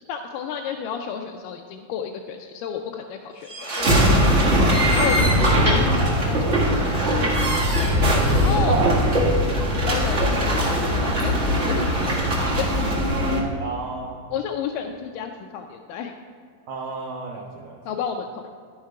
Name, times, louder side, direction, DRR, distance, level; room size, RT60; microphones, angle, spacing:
voice 1, 0.1-6.4 6.7-7.4 7.8-8.8 9.8-11.3 11.7-12.8 14.3-16.2 17.9-18.5, left 7 dB, 80° left, 3 dB, 2.0 m, -32 dB
sound 1, 3.5-13.4, equal, 50° right, 0.7 m, -20 dB
voice 2, 8.5-8.9 13.6-14.3 16.7-17.8, right 4 dB, 90° right, -1 dB, 1.5 m, -29 dB
11.5 x 6.5 x 4.7 m, 2.2 s
omnidirectional pair, 4.1 m